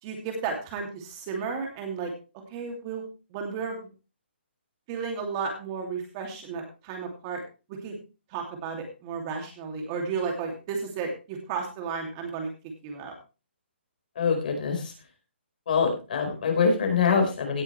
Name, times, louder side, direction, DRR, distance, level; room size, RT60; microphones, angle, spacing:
voice 1, 0.0-2.1 2.5-3.0 3.3-3.9 4.9-7.4 7.7-8.0 8.3-12.5 12.8-13.1, right 5 dB, 25° right, 3 dB, 2.7 m, -33 dB
voice 2, 14.1-14.9 15.7-17.6, left 5 dB, 50° left, 3 dB, 4.7 m, -24 dB
17.0 x 8.1 x 3.3 m, 0.31 s
hypercardioid pair, 170°, 6 cm